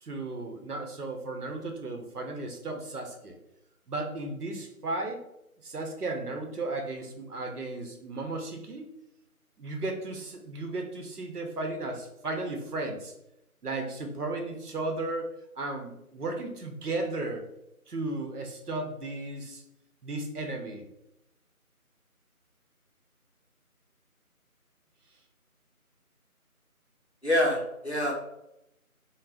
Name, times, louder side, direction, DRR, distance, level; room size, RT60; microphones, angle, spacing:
voice 1, 0.0-3.4 3.9-5.2 5.6-8.9 9.6-13.1 13.6-15.3 15.6-17.4 17.9-19.6 20.0-20.8, right 2 dB, 90° right, 3 dB, 0.7 m, -35 dB
voice 2, 27.2-28.1, left 1 dB, 50° left, -2 dB, 0.5 m, -26 dB
2.5 x 2.1 x 3.3 m, 0.83 s
figure-of-eight pair, 175°, 44 cm